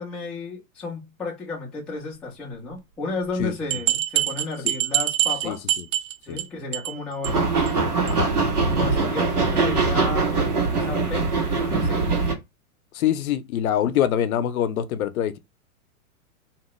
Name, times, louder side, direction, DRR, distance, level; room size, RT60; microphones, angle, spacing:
voice 1, 0.0-5.7 6.3-7.5 8.7-11.3 11.6-12.2, left 3 dB, ahead, 0.3 m, -33 dB
sound 1, 3.3-3.4 3.7-6.4 6.7-7.0 7.2-7.3 7.7-7.8 8.1-8.2, right 13 dB, 60° right, 0.7 m, -24 dB
voice 2, 5.4-5.8 6.3-6.4 8.1-8.3 12.9-15.4, left 10 dB, 70° left, 0.6 m, -24 dB
sound 2, 7.2-12.3, right 4 dB, 90° right, 1.4 m, -22 dB
2.9 x 2.2 x 3.0 m
hypercardioid pair, 120°, 44 cm